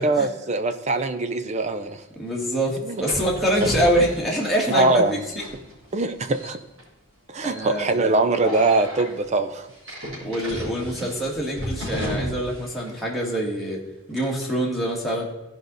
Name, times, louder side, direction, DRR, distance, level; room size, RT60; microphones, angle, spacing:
voice 1, 0.0-2.0 2.8-3.0 3.6-3.7 4.7-5.1 5.9-6.6 7.3-9.7, right 3 dB, 30° right, 10 dB, 0.5 m, -22 dB
sound 1, 1.7-1.8 3.0-6.0 6.3-6.8 7.4-7.7 8.4-9.0 9.8-12.6 12.9-13.0 14.2-14.4, equal, 70° right, 3.3 m, -32 dB
voice 2, 2.2-5.2 7.4-8.1 10.2-13.8 14.1-15.2, right 1 dB, ahead, -3 dB, 1.7 m, -25 dB
15.0 x 5.0 x 4.0 m, 1.0 s
head